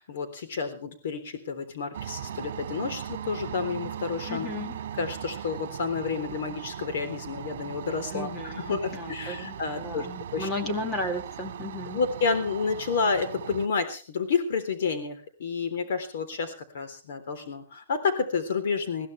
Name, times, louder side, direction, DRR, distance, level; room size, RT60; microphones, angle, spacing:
voice 1, 0.0-4.5 5.0-10.1 10.3-10.5 11.9-19.1, left 5 dB, 60° left, 9 dB, 3.6 m, -30 dB
sound 1, 1.9-13.7, right 9 dB, 60° right, 1.9 m, -38 dB
voice 2, 4.3-4.8 8.1-12.0, left 1 dB, 15° left, 5 dB, 2.0 m, -34 dB
21.5 x 15.5 x 3.4 m, 0.35 s
hypercardioid pair, 180°, 0 cm